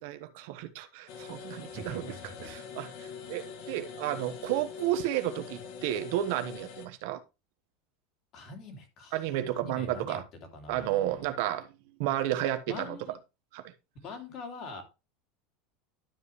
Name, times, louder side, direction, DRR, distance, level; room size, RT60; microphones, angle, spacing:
voice 1, 0.0-2.1 2.4-7.2 9.1-10.2 10.7-11.7 12.0-13.0 13.5-13.7, right 13 dB, 65° right, 1.2 m, -32 dB
sound 1, 1.1-6.9, left 6 dB, 55° left, 1.8 m, -44 dB
voice 2, 1.7-2.5 8.3-10.2 10.5-11.3 12.7-13.2 14.0-14.8, left 2 dB, 40° left, 2.8 m, -44 dB
12.0 x 5.5 x 3.2 m
supercardioid pair, 160°, 0 cm